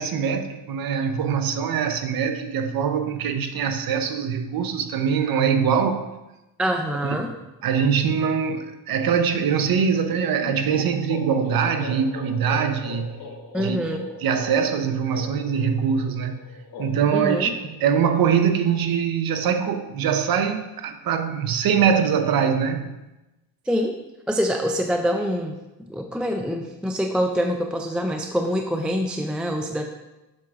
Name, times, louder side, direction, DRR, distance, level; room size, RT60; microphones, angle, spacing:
voice 1, 0.0-6.0 7.0-7.2 7.6-13.1 13.6-13.8 14.2-16.4 16.8-17.5 17.8-23.0, right 7 dB, 65° right, 7 dB, 0.7 m, -23 dB
voice 2, 6.6-7.3 13.5-14.2 17.1-17.5 23.7-24.0 24.3-25.5 25.8-29.8, equal, 5° right, 3 dB, 0.3 m, -25 dB
sound 1, 10.4-18.1, left 2 dB, 65° left, 1.0 m, -39 dB
7.5 x 6.2 x 2.4 m, 1.0 s
cardioid pair, 120°, 38 cm